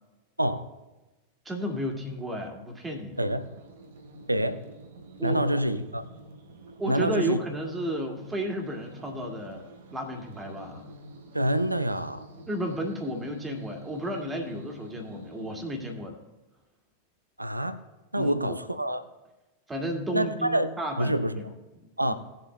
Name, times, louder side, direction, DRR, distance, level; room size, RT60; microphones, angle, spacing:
voice 1, 1.5-3.2 5.2-5.6 6.8-9.6 9.9-10.9 12.5-16.2 18.2-18.6 19.7-21.4 21.8-22.1, equal, 10° right, 2 dB, 1.9 m, -33 dB
sound 1, 3.1-15.8, right 1 dB, 60° right, 1.0 m, -48 dB
voice 2, 3.2-3.5 4.3-4.6 5.2-6.0 6.8-7.4 11.3-12.3 17.4-17.8 18.1-19.0 20.1-20.7 21.0-21.5 22.0-22.1, right 1 dB, 85° right, 12 dB, 0.5 m, -26 dB
18.0 x 7.5 x 2.2 m, 1.1 s
figure-of-eight pair, 90°, 0 cm